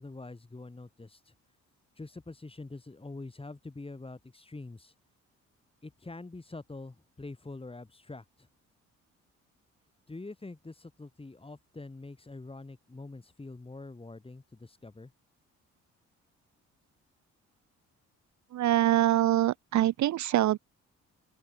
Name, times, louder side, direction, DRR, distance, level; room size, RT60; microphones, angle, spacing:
voice 1, 0.0-1.3 2.0-4.9 5.8-8.5 10.1-15.1, left 3 dB, 20° left, 5.7 m, -45 dB
voice 2, 18.5-20.6, right 13 dB, 70° right, 1.0 m, -24 dB
open air
cardioid pair, 90°, 30 cm